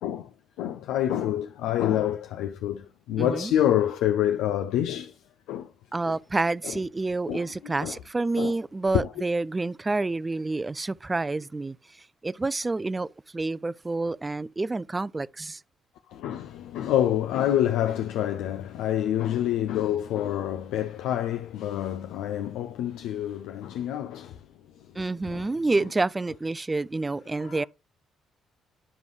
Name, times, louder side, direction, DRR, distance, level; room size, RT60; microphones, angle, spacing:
voice 1, 0.0-5.2 5.5-5.7 6.1-6.2 6.6-6.8 7.3-8.0 8.4-8.6 8.9-9.1 16.1-24.5 24.8-25.5 27.4-27.6, left 11 dB, 70° left, 0.4 m, -27 dB
voice 2, 3.2-3.5 5.9-11.8 12.2-13.1 13.3-15.6 25.0-27.6, right 3 dB, 25° right, 0.3 m, -28 dB
9.7 x 5.2 x 3.1 m
hypercardioid pair, 45°, 0 cm